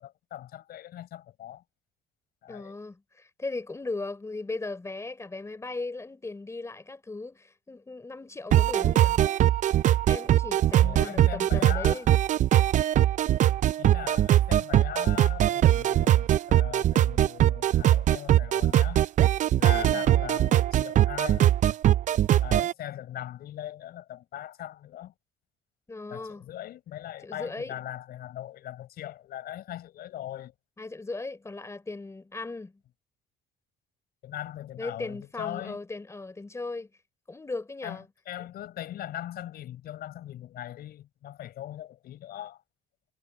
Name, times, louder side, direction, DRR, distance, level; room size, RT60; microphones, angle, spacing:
voice 1, 0.0-1.6 2.4-2.8 10.8-12.1 13.8-19.0 19.5-21.5 22.4-25.1 26.1-30.5 34.2-35.8 37.8-38.0 38.2-42.6, left 12 dB, 65° left, 5.1 m, -40 dB
voice 2, 2.5-9.2 10.1-12.1 19.7-20.0 25.9-26.4 27.2-27.7 30.8-32.8 34.8-36.9 37.3-38.1 38.4-38.5, left 3 dB, 15° left, 3.6 m, -37 dB
sound 1, 8.5-22.7, right 12 dB, 45° right, 0.4 m, -21 dB
cardioid pair, 110°, 17 cm